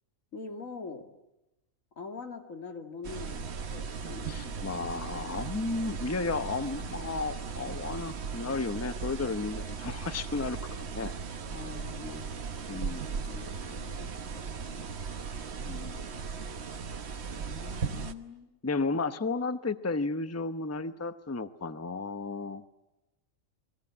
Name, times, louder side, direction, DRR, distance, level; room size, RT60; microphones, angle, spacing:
voice 1, 0.3-1.1 2.0-4.6 5.1-5.2 11.5-12.9 13.3-14.9 17.3-18.5, left 4 dB, 75° left, 5 dB, 2.8 m, -44 dB
sound 1, 3.0-18.1, right 5 dB, 55° right, 1.3 m, -37 dB
voice 2, 4.3-11.1 12.7-13.1 15.7-16.2 18.6-22.6, left 3 dB, 15° left, 11 dB, 0.8 m, -33 dB
29.5 x 21.5 x 8.6 m, 0.96 s
omnidirectional pair, 1.4 m